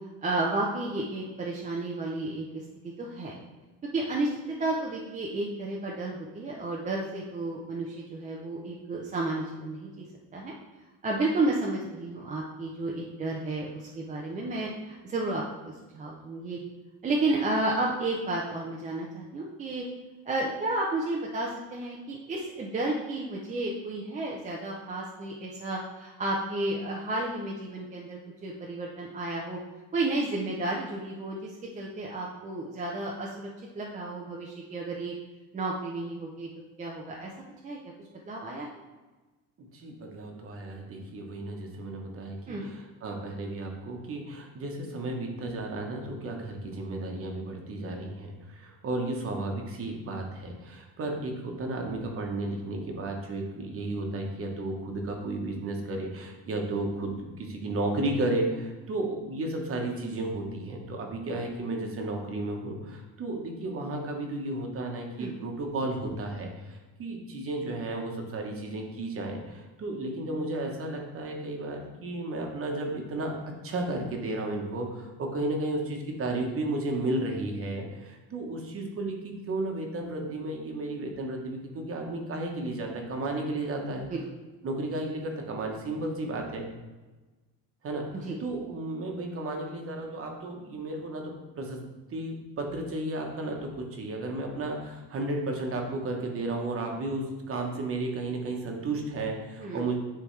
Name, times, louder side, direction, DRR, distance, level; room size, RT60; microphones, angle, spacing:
voice 1, 0.2-2.6 3.0-3.4 3.9-10.0 10.3-10.5 11.0-16.6 17.0-19.8 20.3-29.6 29.9-33.5 33.7-35.1 35.5-36.5 36.8-37.3 37.6-37.8 38.3-38.7 42.5-42.7 65.2-65.3 84.1-84.2 88.2-88.4 99.6-99.8, right 2 dB, 20° right, -2 dB, 0.5 m, -32 dB
voice 2, 39.7-73.4 73.6-84.1 84.6-86.7 87.8-91.8 92.1-99.9, right 2 dB, 35° right, 2 dB, 1.1 m, -33 dB
10.0 x 3.4 x 3.2 m, 1.2 s
cardioid pair, 150°, 39 cm